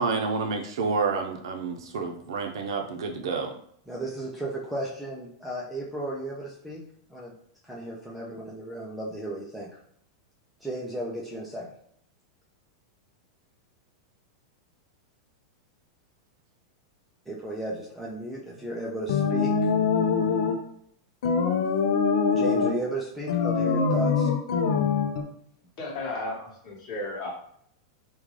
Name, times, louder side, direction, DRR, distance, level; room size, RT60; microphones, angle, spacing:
voice 1, 0.0-3.5, right 4 dB, 85° right, 3 dB, 0.6 m, -29 dB
voice 2, 3.9-6.8 7.1-7.3 7.7-9.7 10.6-11.7 17.3-19.7 22.3-24.3, right 1 dB, ahead, -5 dB, 0.4 m, -34 dB
sound 1, 19.1-20.6 21.2-22.8 23.3-25.2, left 5 dB, 75° left, 0.5 m, -24 dB
voice 3, 25.8-27.3, left 2 dB, 40° left, -2 dB, 1.1 m, -34 dB
3.7 x 2.3 x 3.1 m, 0.67 s
supercardioid pair, 160°, 2 cm